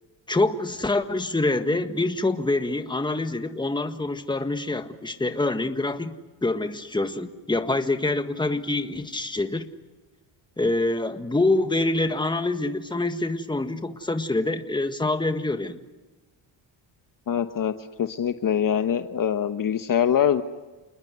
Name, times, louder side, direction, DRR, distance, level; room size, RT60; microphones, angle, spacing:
voice 1, 0.3-6.2 6.4-9.7 10.6-15.8, left 2 dB, 10° left, 8 dB, 1.6 m, -25 dB
voice 2, 17.3-17.7 18.0-20.4, left 9 dB, 45° left, 9 dB, 1.1 m, -23 dB
29.0 x 20.5 x 9.5 m, 1.2 s
cardioid pair, 110°, 46 cm